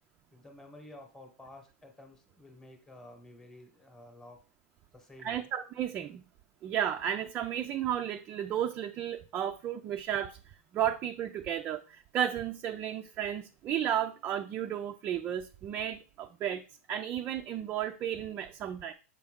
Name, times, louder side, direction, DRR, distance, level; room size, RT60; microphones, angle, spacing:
voice 1, 0.3-4.4 4.9-5.5, left 1 dB, 5° left, 1.0 m, -52 dB
voice 2, 5.2-6.2 6.6-10.4 10.7-16.6 16.9-18.9, right 10 dB, 25° right, 0.3 m, -33 dB
6.9 x 4.3 x 3.6 m
hypercardioid pair, 140°, 8 cm